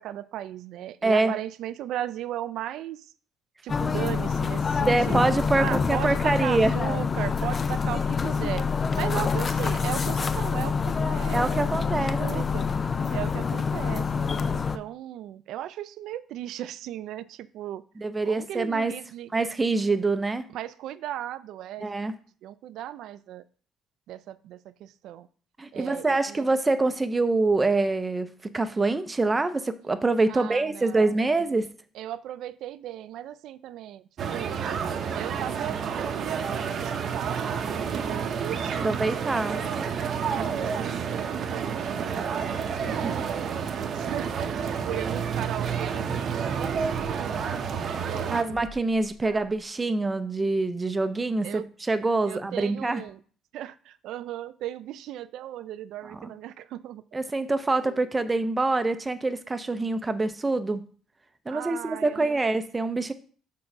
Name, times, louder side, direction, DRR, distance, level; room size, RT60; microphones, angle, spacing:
voice 1, 0.0-3.1 3.6-8.7 9.0-12.7 13.1-17.8 18.2-19.3 20.5-21.9 22.4-23.4 24.1-25.3 25.7-26.4 30.3-31.6 31.9-34.0 34.3-34.6 35.1-39.8 40.3-42.4 42.8-43.6 43.9-47.6 48.0-48.6 49.2-49.5 51.4-51.7 52.2-53.2 53.5-57.0 57.8-58.0 61.5-62.4, right 12 dB, 70° right, 13 dB, 0.4 m, -37 dB
voice 2, 1.0-1.3 4.9-6.7 11.3-12.5 18.0-18.9 19.3-20.5 21.8-22.1 25.6-31.7 38.8-40.0 42.9-43.1 48.3-53.0 56.1-56.3 57.1-60.8 61.5-63.1, right 3 dB, 15° right, 11 dB, 0.6 m, -25 dB
sound 1, 3.7-14.8, left 5 dB, 30° left, 0.4 m, -26 dB
sound 2, 34.2-48.4, right 6 dB, 50° right, 0.8 m, -30 dB
sound 3, 44.8-45.0 46.6-47.2 48.5-49.6, left 3 dB, 45° left, 1.1 m, -46 dB
6.3 x 3.7 x 6.0 m, 0.44 s
cardioid pair, 120°, 0 cm